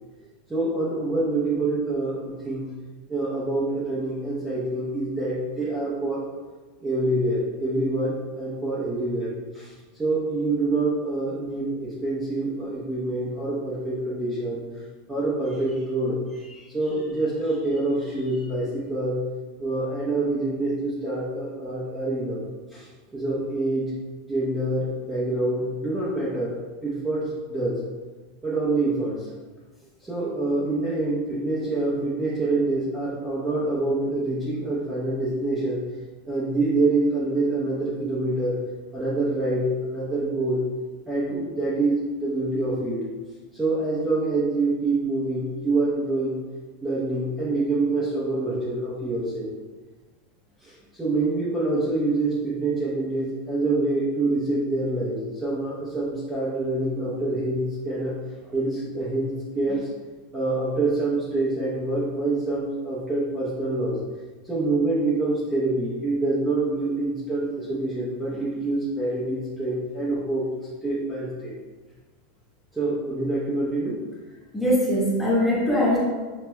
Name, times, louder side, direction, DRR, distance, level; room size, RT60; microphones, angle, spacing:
voice 1, 0.5-2.7 3.1-6.3 6.8-9.7 10.0-14.6 15.1-19.2 19.6-22.4 22.7-23.9 24.3-26.6 26.8-27.8 28.4-29.3 30.0-35.9 36.3-38.6 38.9-40.6 41.1-43.0 43.5-46.4 46.8-49.5 50.6-58.2 58.4-59.9 60.3-64.0 64.4-70.5 70.8-71.5 72.7-74.0, right 2 dB, 10° right, -9 dB, 0.8 m, -26 dB
voice 2, 74.5-76.0, equal, 5° left, -6 dB, 1.2 m, -21 dB
6.1 x 2.8 x 2.2 m, 1.4 s
supercardioid pair, 140°, 0 cm